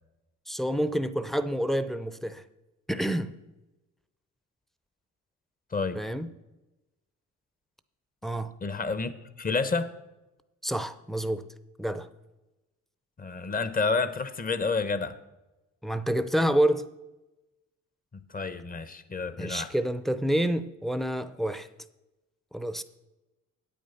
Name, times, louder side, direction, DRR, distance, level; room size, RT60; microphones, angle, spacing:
voice 1, 0.5-2.4 2.9-3.3 5.9-6.3 8.2-8.5 10.6-11.4 11.8-12.1 15.8-16.9 19.4-21.7 22.5-22.8, right 1 dB, ahead, 0.6 m, -28 dB
voice 2, 8.6-9.9 13.2-15.2 18.1-19.7, left 4 dB, 30° left, 0.8 m, -29 dB
8.7 x 8.6 x 5.7 m
cardioid pair, 90°, 30 cm